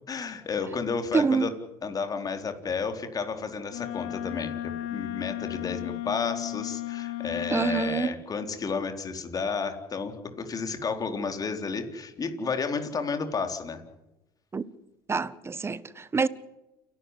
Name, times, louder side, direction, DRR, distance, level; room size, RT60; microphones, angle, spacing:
voice 1, 0.1-1.5 1.8-13.8, left 5 dB, 35° left, 4.0 m, -32 dB
voice 2, 1.1-1.5 7.5-8.2 14.5-14.6 15.1-16.3, right 5 dB, 20° right, 1.3 m, -26 dB
Wind instrument woodwind instrument, 3.7-8.1, left 13 dB, 70° left, 2.2 m, -34 dB
29.5 x 12.0 x 9.9 m
supercardioid pair, 90°, 11 cm